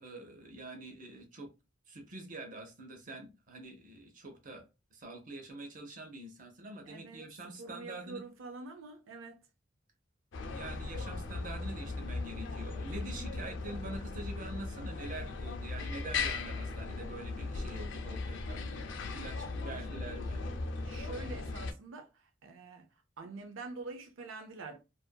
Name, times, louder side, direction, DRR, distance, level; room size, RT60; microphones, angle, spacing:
voice 1, 0.0-1.5 1.9-8.2 10.5-20.4, right 2 dB, 40° right, 0.7 m, -45 dB
voice 2, 6.8-7.3 7.6-9.4 19.7-20.0 20.8-22.9 23.2-24.8, right 3 dB, 90° right, 0.4 m, -46 dB
sound 1, 10.3-21.7, left 3 dB, 70° left, 0.4 m, -38 dB
2.6 x 2.4 x 2.2 m
head